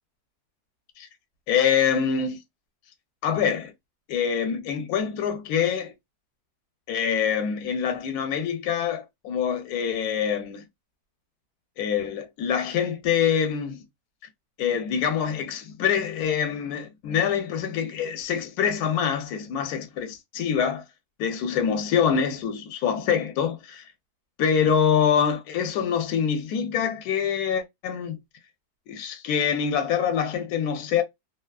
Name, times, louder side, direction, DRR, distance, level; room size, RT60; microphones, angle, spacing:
voice 1, 1.5-2.4 3.2-3.7 4.1-5.9 6.9-10.6 11.8-13.8 14.6-20.8 21.2-23.8 24.4-28.2 28.9-31.0, left 7 dB, 80° left, 1.1 m, -25 dB
2.7 x 2.3 x 2.2 m
omnidirectional pair, 1.6 m